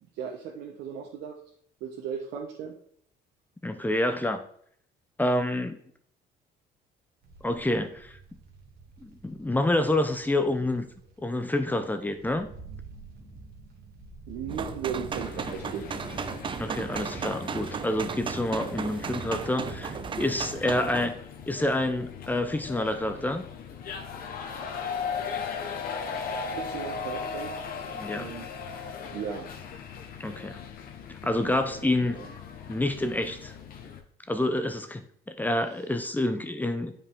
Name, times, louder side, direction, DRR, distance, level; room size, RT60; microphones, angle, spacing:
voice 1, 0.2-1.4 1.8-2.7 14.3-16.3 16.6-16.7 26.6-27.5 28.1-28.5 29.1-29.5 31.4-32.3, right 7 dB, 85° right, -1 dB, 1.3 m, -37 dB
voice 2, 3.6-4.4 5.2-5.8 7.4-8.2 9.0-10.9 11.2-12.5 16.6-21.1 21.5-23.4 27.9-28.3 30.2-30.6 31.2-32.2 32.7-33.5 34.3-36.9, left 1 dB, 10° left, 9 dB, 0.8 m, -28 dB
sound 1, 7.2-15.6, right 3 dB, 60° right, 2.0 m, -48 dB
sound 2, 14.5-21.1, right 6 dB, 30° right, 0.5 m, -35 dB
sound 3, 15.1-34.0, left 5 dB, 60° left, 1.3 m, -38 dB
9.2 x 5.3 x 3.7 m, 0.62 s
cardioid pair, 110°, 17 cm